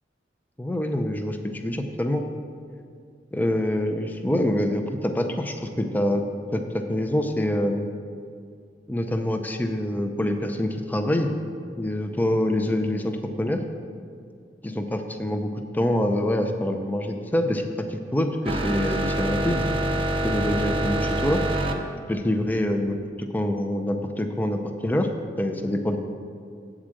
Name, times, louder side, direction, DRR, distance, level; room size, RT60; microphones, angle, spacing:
voice 1, 0.6-2.2 3.3-6.2 6.5-7.9 8.9-11.3 11.8-13.6 14.6-19.6 20.2-21.4 22.1-25.1 25.4-26.0, left 1 dB, 10° left, 5 dB, 0.5 m, -25 dB
sound 1, 18.4-21.7, right 1 dB, 30° right, 0.6 m, -25 dB
8.5 x 4.9 x 7.4 m, 2.2 s
head